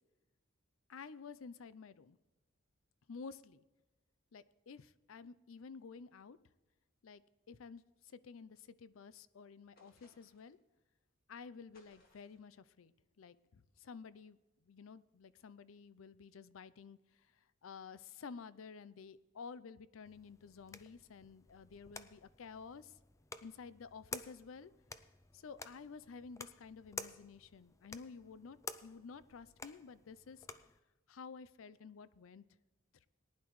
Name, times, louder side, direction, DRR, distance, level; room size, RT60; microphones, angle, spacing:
voice 1, 0.9-2.2 3.1-3.6 4.3-6.4 7.0-7.2 7.5-10.6 11.3-14.4 14.6-23.0 23.4-24.7 25.3-30.5 31.1-32.4, left 5 dB, 85° left, 16 dB, 0.5 m, -52 dB
sound 1, 9.8-10.6 11.7-12.5, left 2 dB, 50° left, 2.2 m, -69 dB
sound 2, 20.0-30.8, left 4 dB, 15° left, 0.4 m, -51 dB
19.0 x 10.5 x 3.1 m, 1.1 s
head